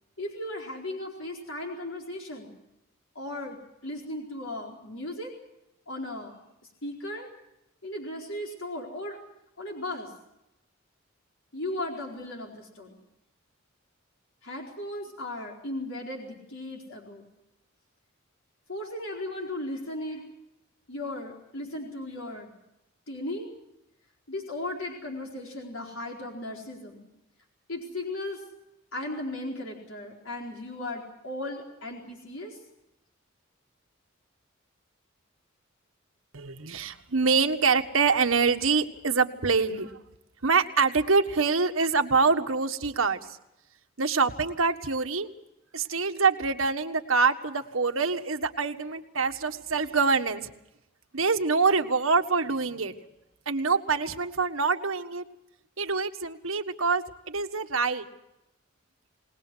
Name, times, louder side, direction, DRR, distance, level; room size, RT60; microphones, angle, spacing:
voice 1, 0.2-2.5 3.1-3.6 3.8-5.3 5.9-6.4 6.8-7.3 7.8-9.2 9.6-10.1 11.5-13.0 14.4-17.3 18.7-20.2 20.9-22.5 23.1-23.5 24.3-27.1 27.7-28.4 28.9-32.6, left 1 dB, 80° left, 0 dB, 4.5 m, -36 dB
voice 2, 36.3-40.0 40.4-43.4 44.0-45.3 45.7-50.5 51.1-52.9 53.5-55.2 55.8-58.0, right 4 dB, 90° right, 6 dB, 1.6 m, -25 dB
28.5 x 19.5 x 6.3 m, 0.87 s
head